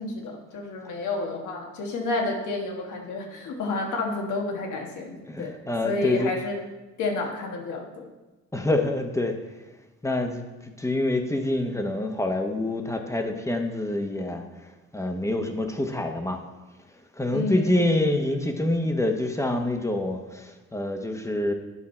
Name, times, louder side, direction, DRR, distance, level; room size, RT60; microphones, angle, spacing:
voice 1, 0.0-5.6 5.8-6.6 7.0-8.1 17.3-17.8, left 3 dB, 80° left, 1 dB, 1.6 m, -30 dB
voice 2, 5.3-6.3 8.5-9.4 10.0-10.5 10.8-14.4 14.9-16.4 17.2-21.5, left 1 dB, 10° left, 4 dB, 1.0 m, -26 dB
9.8 x 5.5 x 4.4 m, 1.1 s
cardioid pair, 90°, 30 cm